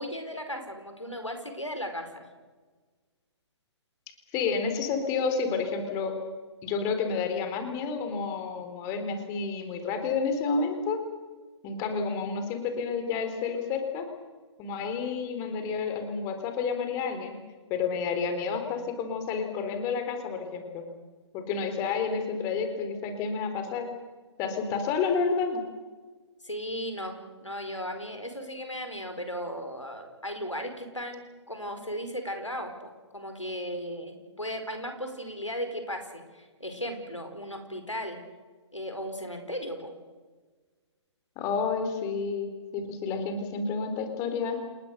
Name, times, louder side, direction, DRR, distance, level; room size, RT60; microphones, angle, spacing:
voice 1, 0.0-2.3 26.4-38.2 38.7-39.9, equal, 90° left, 6 dB, 4.9 m, -36 dB
voice 2, 4.3-6.1 6.6-11.0 11.6-14.1 14.6-17.4 17.7-20.8 21.3-23.9 24.4-25.6 41.4-44.6, left 5 dB, 20° left, 6 dB, 4.0 m, -30 dB
28.5 x 20.0 x 6.8 m, 1.3 s
figure-of-eight pair, 130°, 15 cm